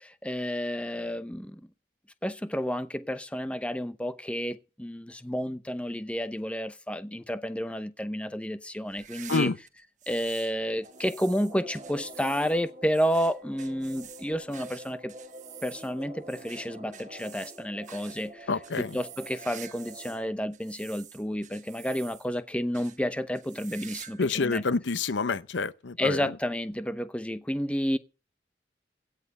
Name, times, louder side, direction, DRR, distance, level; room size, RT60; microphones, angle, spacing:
voice 1, 0.2-1.5 2.2-9.5 10.1-15.1 15.6-18.3 18.8-24.6 26.0-28.0, equal, 5° left, 0.7 m, -31 dB
sound 1, 8.9-10.5 10.8-20.2 20.5-22.4 22.7-23.0 23.3-24.2 24.5-24.6 25.4-25.5 26.7-26.8, right 10 dB, 45° right, 1.3 m, -48 dB
sound 2, 10.8-20.3, right 1 dB, 25° right, 6.1 m, -47 dB
voice 2, 18.5-19.0 24.2-26.3, left 4 dB, 90° left, 0.7 m, -28 dB
16.5 x 9.2 x 5.3 m
head